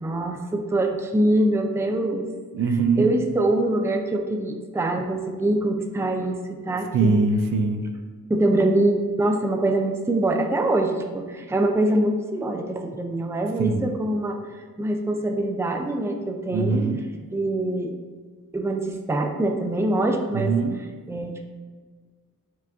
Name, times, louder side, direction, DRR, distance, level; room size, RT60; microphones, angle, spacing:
voice 1, 0.0-2.3 3.0-7.2 8.3-16.9 17.3-18.0 18.5-20.5 21.1-21.4, right 1 dB, 10° right, 4 dB, 0.4 m, -24 dB
voice 2, 2.5-3.1 6.9-7.8 13.6-13.9 16.5-17.0 20.3-20.8, right 4 dB, 65° right, 6 dB, 0.5 m, -22 dB
4.6 x 2.5 x 3.5 m, 1.5 s
cardioid pair, 55°, 35 cm